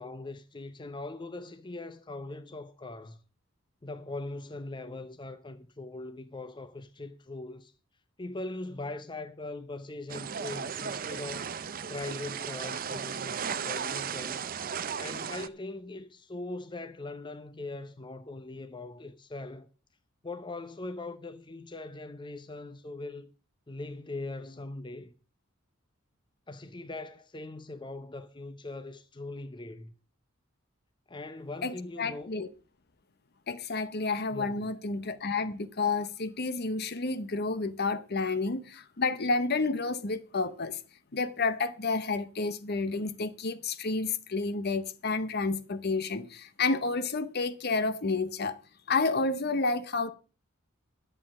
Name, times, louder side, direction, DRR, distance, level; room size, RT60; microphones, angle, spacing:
voice 1, 0.0-3.2 3.8-7.7 8.2-11.6 11.9-14.5 15.0-19.7 20.2-23.3 23.7-25.1 26.5-29.9 31.1-32.3 34.3-34.7, left 2 dB, 20° left, 0.7 m, -41 dB
sound 1, 10.1-15.5, right 7 dB, 45° right, 0.6 m, -35 dB
voice 2, 31.6-32.5 33.5-40.8 41.1-48.6 48.9-50.1, left 3 dB, 50° left, 0.9 m, -30 dB
11.0 x 7.5 x 6.1 m
head